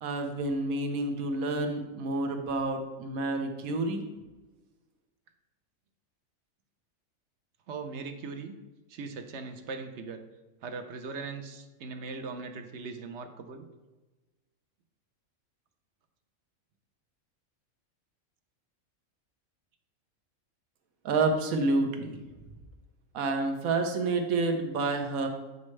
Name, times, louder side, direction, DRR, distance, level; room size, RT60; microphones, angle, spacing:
voice 1, 0.0-4.1 21.0-22.2 23.1-25.3, right 3 dB, 80° right, 5 dB, 1.3 m, -29 dB
voice 2, 7.7-8.6 8.9-10.2 10.6-13.7, right 4 dB, 60° right, 7 dB, 0.9 m, -39 dB
8.5 x 5.4 x 3.2 m, 1.2 s
omnidirectional pair, 1.4 m